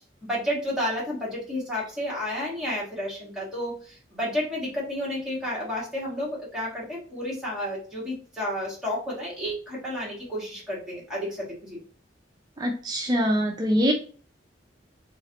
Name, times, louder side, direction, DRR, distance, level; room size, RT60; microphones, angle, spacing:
voice 1, 0.2-11.8, left 1 dB, 5° right, -6 dB, 1.7 m, -31 dB
voice 2, 12.6-13.9, equal, 20° right, 1 dB, 0.4 m, -23 dB
3.9 x 3.1 x 2.9 m, 0.41 s
head